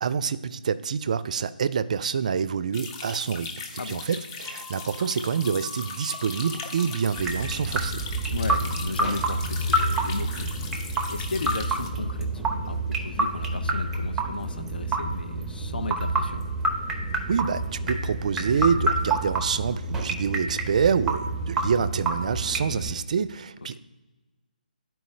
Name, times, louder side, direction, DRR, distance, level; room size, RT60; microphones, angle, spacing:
voice 1, 0.0-3.6 3.8-8.0 17.3-23.8, right 6 dB, 50° right, 14 dB, 0.4 m, -27 dB
sound 1, 2.7-11.9, left 5 dB, 30° left, 0.8 m, -39 dB
sound 2, 4.4-8.2 8.5-8.6, equal, 10° left, 1.1 m, -46 dB
sound 3, 7.2-23.0, right 2 dB, 10° right, 0.6 m, -28 dB
voice 2, 8.3-10.5 10.8-16.4 23.7-23.8, left 3 dB, 75° left, 9 dB, 0.6 m, -35 dB
11.0 x 4.5 x 3.2 m, 1.2 s
figure-of-eight pair, 150°, 5 cm